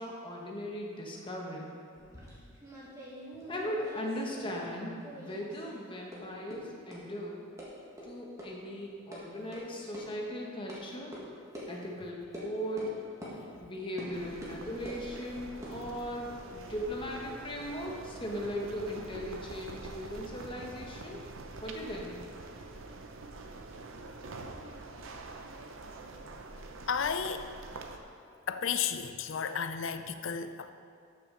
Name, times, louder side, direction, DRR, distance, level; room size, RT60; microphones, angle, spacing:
voice 1, 0.0-1.7 3.5-7.5 8.0-11.1 11.7-12.9 13.3-21.2 21.6-22.2, equal, 25° left, -1 dB, 1.2 m, -38 dB
sound 1, 1.9-4.8 5.0-5.8 6.1-6.2 6.5-6.6 6.9-7.0 7.6-7.7 8.0-8.1 8.4-8.5 8.8-9.2 9.5-9.6 9.9-10.0 10.7-10.8 11.1-11.2 11.5-11.7 12.3-12.5 12.8-12.9 13.2-13.3 14.0-14.1 14.4-15.0 15.5-17.1, equal, 15° right, 1.7 m, -46 dB
sound 2, 14.1-28.0, right 2 dB, 65° right, 0.7 m, -46 dB
voice 2, 26.9-27.5 28.5-30.7, left 7 dB, 60° left, 9 dB, 0.5 m, -33 dB
13.0 x 6.3 x 3.9 m, 2.4 s
head